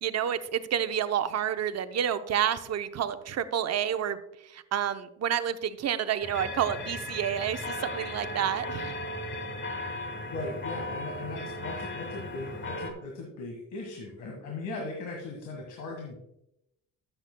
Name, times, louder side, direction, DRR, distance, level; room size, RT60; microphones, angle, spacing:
voice 1, 0.0-4.2 4.4-8.9, right 9 dB, 55° right, 11 dB, 0.7 m, -29 dB
sound 1, 6.2-12.9, left 1 dB, 40° left, 1.3 m, -36 dB
voice 2, 9.9-16.2, left 2 dB, 80° left, 1 dB, 1.8 m, -39 dB
12.5 x 7.9 x 2.2 m, 0.83 s
cardioid pair, 90°, 30 cm